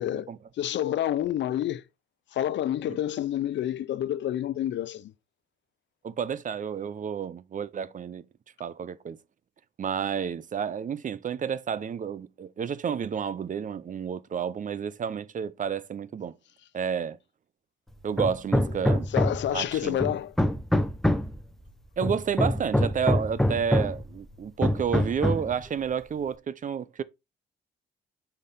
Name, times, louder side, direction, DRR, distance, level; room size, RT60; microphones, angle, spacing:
voice 1, 0.0-1.8 2.3-5.1 19.1-20.4, left 11 dB, 65° left, 0.6 m, -29 dB
voice 2, 6.0-8.3 8.6-9.2 9.8-16.4 16.7-17.2 18.0-19.1 19.5-20.0 22.0-27.0, right 7 dB, 40° right, 0.6 m, -30 dB
Hammer, 18.2-19.6 20.0-21.4 22.0-24.1 24.6-25.6, left 1 dB, ahead, 0.9 m, -25 dB
5.8 x 4.9 x 4.2 m
cardioid pair, 90°, 20 cm